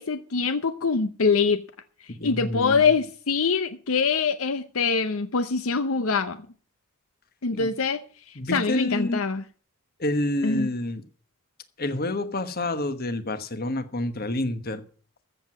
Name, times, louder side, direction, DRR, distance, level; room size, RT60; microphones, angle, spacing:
voice 1, 0.0-1.6 2.2-6.4 7.4-8.0 8.5-9.4 10.4-10.7, left 5 dB, 70° left, 0.8 m, -24 dB
voice 2, 2.1-2.8 7.5-7.7 8.3-9.2 10.0-11.0 11.8-14.8, left 1 dB, 45° left, 1.3 m, -28 dB
14.0 x 7.6 x 6.1 m
head